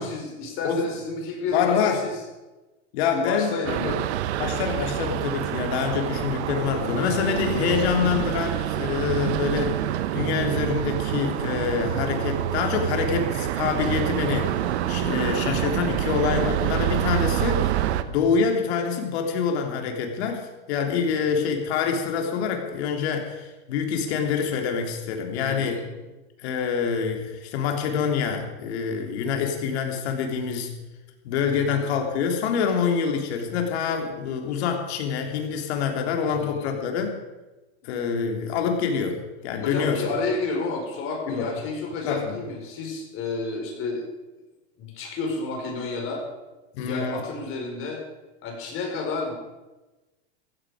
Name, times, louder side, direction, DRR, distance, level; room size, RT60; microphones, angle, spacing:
voice 1, 0.0-2.2 3.1-4.0 16.0-16.1 25.3-25.9 31.5-31.9 36.3-36.8 39.6-44.0 44.8-46.2 46.8-48.0 48.4-49.3, left 3 dB, 40° left, 1 dB, 4.9 m, -30 dB
voice 2, 1.5-2.0 2.9-3.5 3.8-4.0 4.4-25.8 26.4-30.7 31.2-37.1 37.8-40.1 41.3-41.5 42.0-42.3 46.7-47.2, left 6 dB, 65° left, 3 dB, 3.2 m, -26 dB
sound 1, 3.6-18.0, right 12 dB, 75° right, 1.1 m, -27 dB
15.0 x 14.5 x 5.0 m, 1.1 s
supercardioid pair, 140°, 34 cm